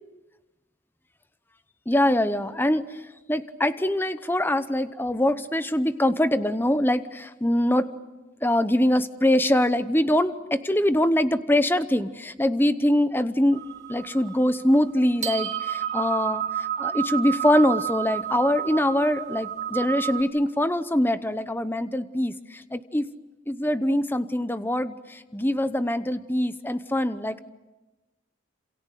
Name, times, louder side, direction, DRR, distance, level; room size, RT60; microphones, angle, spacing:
voice 1, 1.9-2.9 3.3-7.9 8.4-13.6 13.9-23.1 23.5-27.4, left 1 dB, 10° left, 12 dB, 0.8 m, -23 dB
sound 1, 13.5-20.2, right 10 dB, 35° right, 1.7 m, -31 dB
28.0 x 27.5 x 6.7 m, 1.1 s
head